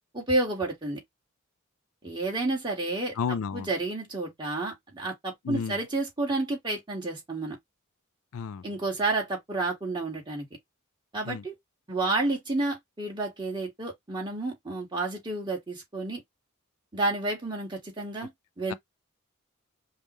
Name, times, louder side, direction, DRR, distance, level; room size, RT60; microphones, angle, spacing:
voice 1, 0.1-1.0 2.0-7.6 8.6-10.5 11.1-11.5 11.9-16.2 16.9-18.3 18.6-18.7, right 2 dB, 20° right, 1.9 m, -30 dB
voice 2, 3.2-3.7 5.4-5.8 8.3-8.6 11.2-11.4 18.7-18.8, left 6 dB, 75° left, 0.4 m, -32 dB
5.3 x 2.4 x 3.1 m
head